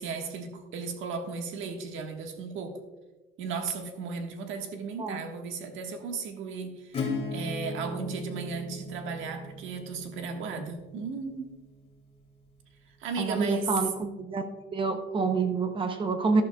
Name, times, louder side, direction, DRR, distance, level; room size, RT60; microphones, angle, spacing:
voice 1, 0.0-2.8 3.4-7.0 7.3-11.6 13.0-13.7, right 5 dB, 75° right, 4 dB, 1.4 m, -35 dB
Acoustic guitar / Strum, 6.9-12.4, left 2 dB, 30° left, 2.3 m, -38 dB
voice 2, 13.2-14.4 14.7-16.4, right 4 dB, 25° right, 7 dB, 0.6 m, -27 dB
12.5 x 11.5 x 2.3 m, 1.1 s
cardioid pair, 175°, 20 cm